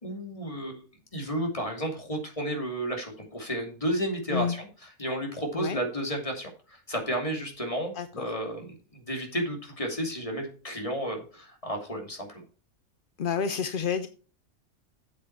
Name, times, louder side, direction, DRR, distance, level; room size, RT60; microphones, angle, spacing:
voice 1, 0.0-0.8 1.1-4.7 5.0-12.4, right 1 dB, 25° left, 2 dB, 2.7 m, -32 dB
voice 2, 13.2-14.1, left 7 dB, 50° left, 10 dB, 0.7 m, -29 dB
8.6 x 7.6 x 4.6 m, 0.37 s
omnidirectional pair, 1.5 m